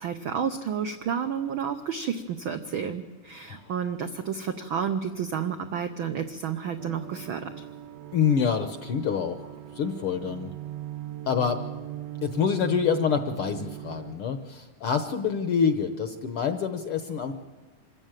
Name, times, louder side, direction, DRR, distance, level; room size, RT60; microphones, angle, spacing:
voice 1, 0.0-7.5, right 7 dB, 85° right, 8 dB, 1.1 m, -31 dB
sound 1, 6.8-14.1, right 13 dB, 70° right, 1.7 m, -40 dB
voice 2, 8.1-9.5 9.7-10.5 11.3-11.6 12.2-17.3, left 7 dB, 65° left, 9 dB, 1.4 m, -26 dB
26.0 x 14.5 x 9.1 m, 1.2 s
omnidirectional pair, 3.6 m